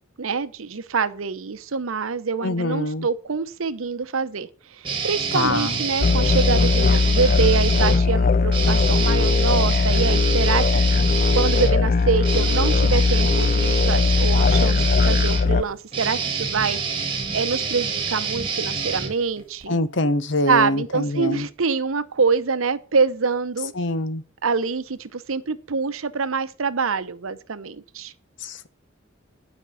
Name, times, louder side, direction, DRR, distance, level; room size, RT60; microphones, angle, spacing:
voice 1, 0.2-16.8 17.3-19.8 20.5-23.7 24.4-28.1, right 5 dB, 90° right, 0.8 m, -25 dB
voice 2, 2.4-3.1 5.3-5.8 19.7-21.4 23.8-24.2 28.4-28.7, left 2 dB, 60° left, 0.9 m, -24 dB
sound 1, 4.8-8.0 8.5-19.6, right 5 dB, 25° right, 1.7 m, -27 dB
sound 2, 6.0-15.6, left 4 dB, 45° left, 0.4 m, -19 dB
10.0 x 5.3 x 7.8 m
head